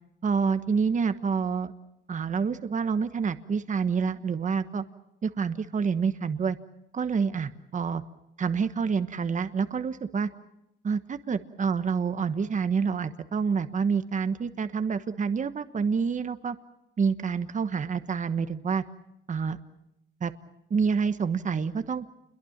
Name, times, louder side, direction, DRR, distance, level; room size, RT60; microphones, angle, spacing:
voice 1, 0.2-1.7 2.1-4.8 5.2-6.6 6.9-8.0 8.4-10.3 10.8-16.6 17.0-18.8 19.3-19.6 20.2-20.3 20.7-22.0, right 5 dB, 40° right, 11 dB, 1.2 m, -27 dB
29.0 x 22.5 x 7.3 m, 0.85 s
cardioid pair, 90°, 20 cm